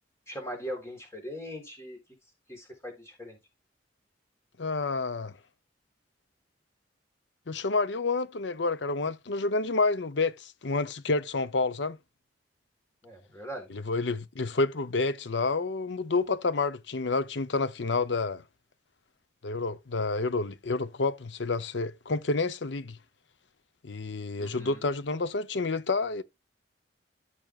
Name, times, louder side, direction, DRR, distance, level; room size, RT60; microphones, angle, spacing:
voice 1, 0.3-2.0 2.5-3.4 13.0-13.7 24.4-24.8, equal, 15° left, 3.8 m, -40 dB
voice 2, 4.6-5.3 7.5-12.0 13.7-18.4 19.4-23.0 23.8-26.2, left 3 dB, 70° left, 0.8 m, -29 dB
14.0 x 6.1 x 2.4 m
head